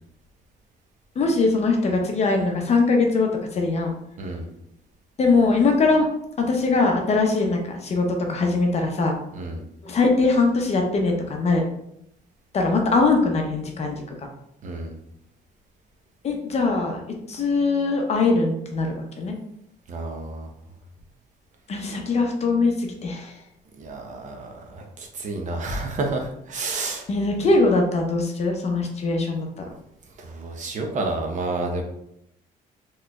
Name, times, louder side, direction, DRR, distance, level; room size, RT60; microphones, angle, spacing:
voice 1, 1.2-3.9 5.2-6.1 6.4-9.2 9.8-11.7 12.5-14.3 16.2-17.0 17.3-19.4 21.7-23.4 27.1-29.5, left 3 dB, 40° left, 2 dB, 0.7 m, -21 dB
voice 2, 9.3-9.6 14.6-15.0 19.9-20.5 23.8-27.1 30.2-31.8, right 2 dB, 45° right, 2 dB, 0.7 m, -30 dB
3.8 x 3.1 x 2.2 m, 0.77 s
cardioid pair, 110°, 17 cm